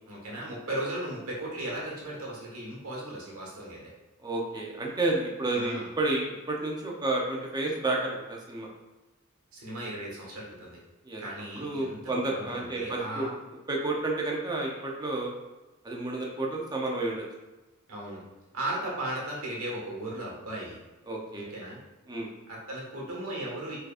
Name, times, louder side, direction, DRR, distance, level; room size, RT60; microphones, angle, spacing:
voice 1, 0.1-3.9 5.5-5.9 9.5-10.8 11.2-13.3 17.9-18.2 18.5-20.8 21.3-21.8 22.5-23.8, right 1 dB, 85° right, -3 dB, 1.5 m, -36 dB
voice 2, 4.2-8.7 11.1-11.2 11.5-13.3 13.7-15.3 15.8-17.2 21.1-21.5 22.1-22.3, right 2 dB, 20° right, -1 dB, 0.7 m, -30 dB
5.1 x 3.9 x 2.5 m, 1.1 s
head